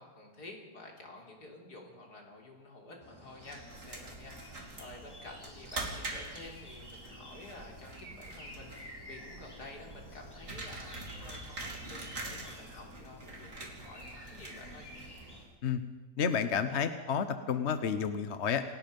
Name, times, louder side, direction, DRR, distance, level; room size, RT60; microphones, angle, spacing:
voice 1, 0.0-14.9, left 2 dB, 65° left, 0 dB, 4.0 m, -50 dB
sound 1, 3.0-15.4, equal, 10° left, 4.4 m, -51 dB
sound 2, 3.4-15.5, right 2 dB, 50° right, 3.3 m, -45 dB
voice 2, 16.2-18.6, left 7 dB, 50° left, 10 dB, 1.1 m, -30 dB
28.0 x 17.5 x 5.3 m, 1.2 s
omnidirectional pair, 1.8 m